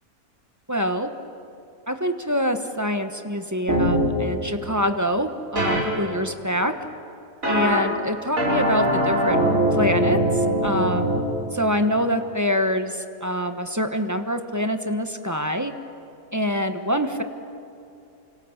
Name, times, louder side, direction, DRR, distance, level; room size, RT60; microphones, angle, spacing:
voice 1, 0.7-1.1 1.9-6.7 7.5-9.4 9.7-10.2 10.6-11.1 11.5-15.7 16.3-17.2, equal, 15° right, 7 dB, 1.0 m, -25 dB
sound 1, 3.7-4.0 5.6-5.8 7.4-7.8 8.4-11.2, right 1 dB, 65° right, 5.7 m, -21 dB
29.0 x 26.0 x 7.2 m, 2.7 s
omnidirectional pair, 1.5 m